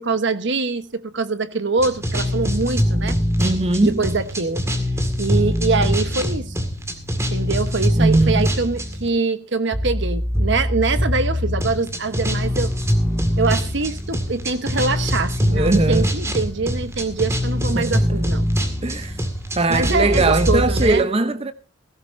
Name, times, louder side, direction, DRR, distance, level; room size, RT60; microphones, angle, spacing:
voice 1, 0.0-3.2 3.8-4.6 5.2-6.6 7.3-12.7 13.4-18.5 19.7-21.0, right 3 dB, 60° right, 1.1 m, -24 dB
sound 1, 1.8-9.1 9.7-20.9, equal, 15° right, 2.0 m, -23 dB
voice 2, 3.4-4.1 8.0-8.5 15.5-16.1 17.7-18.1 18.8-19.2 19.6-21.5, right 2 dB, 30° right, 0.7 m, -20 dB
sound 2, 12.2-20.2, equal, ahead, 2.0 m, -39 dB
16.5 x 16.5 x 2.6 m
head